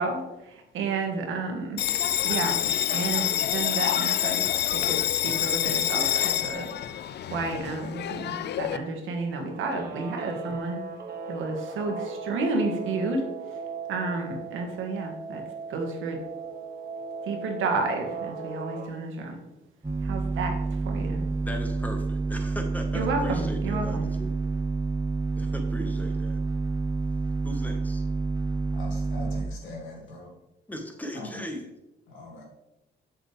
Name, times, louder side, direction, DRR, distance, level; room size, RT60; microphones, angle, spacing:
voice 1, 0.0-1.8 2.2-2.6 2.9-5.0 5.2-7.0 7.3-10.8 11.3-13.6 13.9-15.4 15.7-16.2 17.2-19.4 20.0-20.5 20.8-21.2 22.9-24.1, right 3 dB, 80° right, 3 dB, 1.6 m, -31 dB
Bell, 1.8-8.8, left 11 dB, 60° left, 0.4 m, -27 dB
Guitar, 9.4-18.9, right 4 dB, 55° right, 1.1 m, -38 dB
sound 1, 19.8-29.4, right 3 dB, 15° right, 1.3 m, -28 dB
voice 2, 21.4-24.3 25.3-26.4 27.4-28.0 30.7-31.7, left 1 dB, 10° left, 4 dB, 1.4 m, -37 dB
voice 3, 28.7-30.3 31.1-31.4 32.1-32.4, left 2 dB, 90° left, -1 dB, 2.3 m, -41 dB
7.6 x 6.9 x 3.4 m, 0.94 s
cardioid pair, 90°, 20 cm